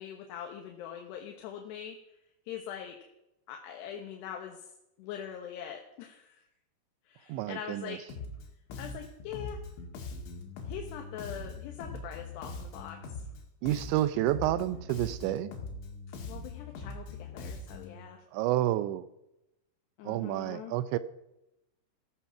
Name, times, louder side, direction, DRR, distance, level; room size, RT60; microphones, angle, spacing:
voice 1, 0.0-2.2 2.4-3.0 3.5-4.7 5.0-6.5 7.0-8.0 8.8-9.6 10.6-13.3 16.3-18.2 20.0-20.7, left 9 dB, 75° left, 3 dB, 3.2 m, -43 dB
voice 2, 7.3-8.0 13.6-15.5 18.3-19.0 20.0-21.0, right 14 dB, 85° right, 14 dB, 3.0 m, -29 dB
Bass guitar, 8.1-8.5 8.7-13.4 13.7-18.0, left 3 dB, 90° left, 4.5 m, -42 dB
15.0 x 14.5 x 5.8 m, 0.89 s
omnidirectional pair, 5.2 m